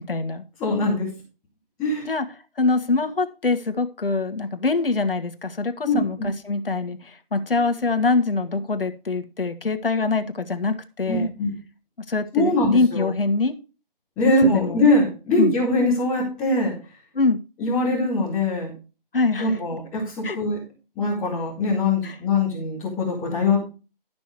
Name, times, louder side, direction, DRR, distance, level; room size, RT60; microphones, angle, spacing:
voice 1, 0.1-0.4 2.0-2.3 2.6-11.3 12.1-13.5 14.4-14.8 15.4-15.5 17.1-17.4 19.1-19.6 20.2-20.4 22.0-22.2, left 3 dB, 70° left, 9 dB, 1.6 m, -24 dB
voice 2, 0.6-1.1 1.8-2.1 5.9-6.0 11.1-11.5 12.3-13.1 14.2-16.7 17.6-18.7 19.4-20.6 21.0-23.6, left 2 dB, 5° left, -10 dB, 0.8 m, -22 dB
12.5 x 6.1 x 4.7 m, 0.32 s
figure-of-eight pair, 165°, 29 cm